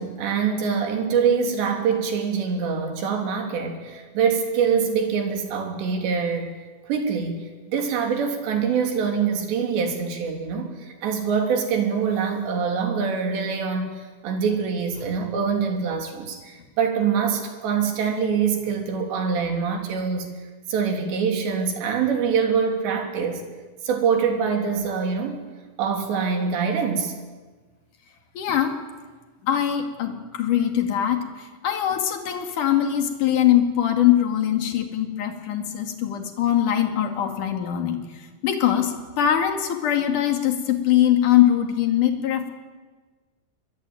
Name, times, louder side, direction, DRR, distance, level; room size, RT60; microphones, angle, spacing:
voice 1, 0.0-6.6 6.8-20.3 20.7-23.4 23.8-25.4 25.8-27.1, right 6 dB, 60° right, 3 dB, 5.0 m, -24 dB
voice 2, 28.3-28.8 29.4-38.0 38.4-42.5, left 11 dB, 50° left, 5 dB, 3.1 m, -22 dB
23.5 x 22.5 x 9.3 m, 1.4 s
omnidirectional pair, 5.7 m